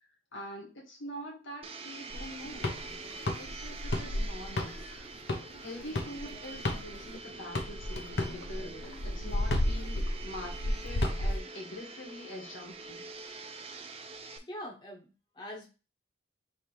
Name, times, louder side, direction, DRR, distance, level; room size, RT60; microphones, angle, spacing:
voice 1, 0.3-2.7 3.4-4.8 5.6-8.7 9.0-10.0 10.2-13.0, left 1 dB, 85° left, -1 dB, 1.7 m, -44 dB
Domestic sounds home sounds, 1.6-14.4, right 3 dB, 30° right, 0.5 m, -45 dB
sound 1, 2.1-7.2 7.5-11.4, left 1 dB, 60° left, 0.7 m, -33 dB
voice 2, 14.4-15.7, equal, 25° left, -1 dB, 1.0 m, -43 dB
3.4 x 3.2 x 4.3 m, 0.31 s
head